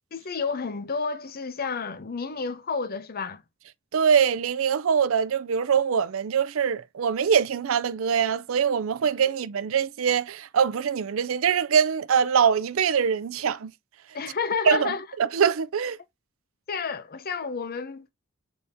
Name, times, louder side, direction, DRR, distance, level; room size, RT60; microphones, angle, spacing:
voice 1, 0.1-3.4 14.1-15.1 16.7-18.1, left 5 dB, 45° left, 0.7 m, -30 dB
voice 2, 3.9-13.7 14.7-14.9 15.2-16.0, right 7 dB, 65° right, 0.4 m, -23 dB
7.0 x 4.0 x 3.4 m
head